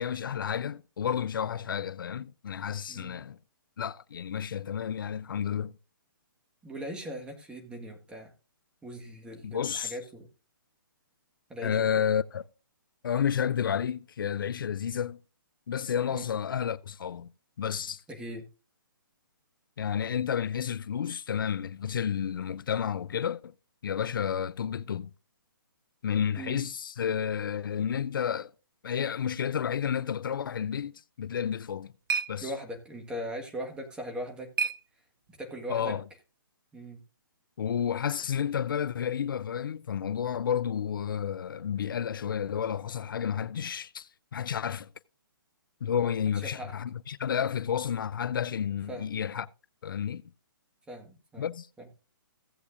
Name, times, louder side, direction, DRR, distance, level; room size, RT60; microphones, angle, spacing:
voice 1, 0.0-3.4 3.8-5.7 9.4-9.9 11.6-12.4 13.0-15.2 15.7-17.3 17.6-18.0 19.8-23.5 23.8-25.1 26.0-28.5 28.8-30.9 31.2-31.9 32.3-32.5 35.7-36.0 37.6-44.9 45.8-49.5 49.8-50.2 51.4-51.7, left 8 dB, 65° left, 0.4 m, -31 dB
voice 2, 6.6-8.3 8.8-10.3 11.5-11.9 16.1-16.2 18.1-18.4 26.4-26.6 32.4-34.5 35.4-36.0 36.7-37.0 46.4-46.7 48.9-49.1 50.9-51.4 51.8-51.9, equal, 10° right, 1.5 m, -39 dB
sound 1, 31.3-35.6, right 6 dB, 70° right, 0.5 m, -37 dB
16.0 x 8.0 x 2.5 m
hypercardioid pair, 140°, 12 cm